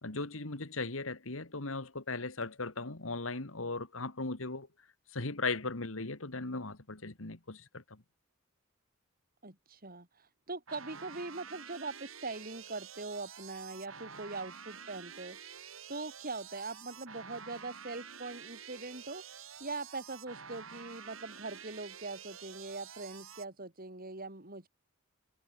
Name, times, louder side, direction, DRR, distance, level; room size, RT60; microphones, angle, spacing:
voice 1, 0.0-4.7 5.1-8.0, left 3 dB, 80° left, 2.3 m, -38 dB
voice 2, 9.4-15.4 15.9-19.2 19.6-24.7, right 3 dB, 45° right, 4.8 m, -42 dB
sound 1, 10.7-23.5, right 7 dB, 85° right, 5.3 m, -49 dB
head